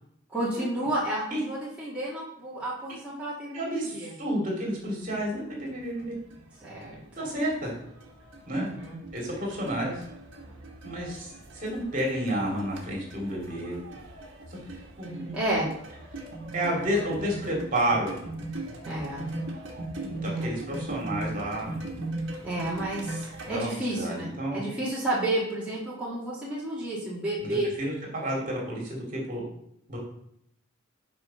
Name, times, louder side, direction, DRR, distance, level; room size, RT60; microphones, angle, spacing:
voice 1, 0.3-4.1 6.6-7.0 8.5-9.0 15.3-15.7 18.8-19.2 20.3-20.5 22.4-27.7, right 1 dB, 5° right, -8 dB, 1.7 m, -31 dB
voice 2, 3.5-6.1 7.2-7.7 8.5-8.7 9.1-10.0 10.8-13.8 14.5-14.6 15.0-15.4 16.5-18.2 20.0-21.7 23.4-24.6 27.4-29.4 29.9-30.0, right 1 dB, 40° right, -2 dB, 2.5 m, -30 dB
sound 1, 4.7-4.9 5.2-23.6, right 2 dB, 60° right, 1.3 m, -39 dB
6.3 x 5.1 x 5.5 m, 0.73 s
head